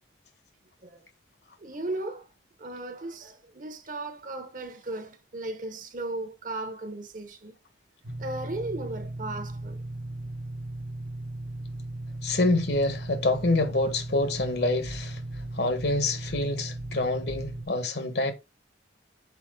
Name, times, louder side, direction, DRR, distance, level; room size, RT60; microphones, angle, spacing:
voice 1, 1.6-2.3 2.6-7.6 8.2-9.8, right 2 dB, 45° right, 1.0 m, -36 dB
sound 1, 8.0-17.6, right 1 dB, 70° right, 1.2 m, -37 dB
voice 2, 12.2-15.2 15.5-18.3, left 2 dB, 60° left, 1.3 m, -26 dB
5.9 x 4.8 x 3.7 m
head